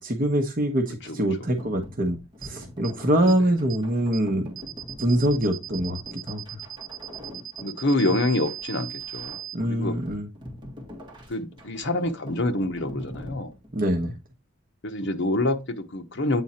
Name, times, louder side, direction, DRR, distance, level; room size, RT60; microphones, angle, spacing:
voice 1, 0.0-4.5 5.0-6.0 6.3-6.6 9.5-10.3 13.7-14.1, right 1 dB, 40° right, 1.1 m, -24 dB
sound 1, 1.6-14.1, equal, 20° right, 1.9 m, -44 dB
sound 2, 2.4-2.5 2.8-2.9 3.3-3.4 3.7-3.8 4.1-4.2 4.6-9.6, right 12 dB, 75° right, 0.6 m, -37 dB
voice 2, 7.6-9.4 9.7-10.0 11.3-13.5 14.8-16.4, left 2 dB, 55° left, 1.0 m, -26 dB
8.3 x 3.7 x 4.3 m
head